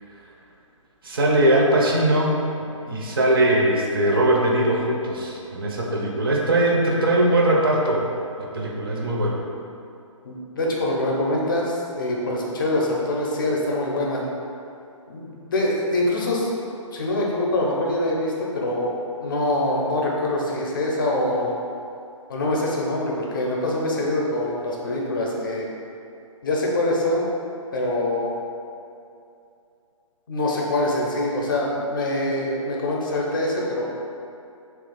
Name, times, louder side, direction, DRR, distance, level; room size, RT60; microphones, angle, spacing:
voice 1, 1.0-2.3 2.9-8.1 8.4-9.4, right 1 dB, 45° right, -2 dB, 0.5 m, -20 dB
voice 2, 10.2-14.2 15.1-16.5 16.9-21.5 22.3-25.7 26.4-27.3 27.7-28.3 30.3-33.8, left 1 dB, 40° left, -3 dB, 0.5 m, -24 dB
2.8 x 2.4 x 3.8 m, 2.6 s
figure-of-eight pair, 135°, 17 cm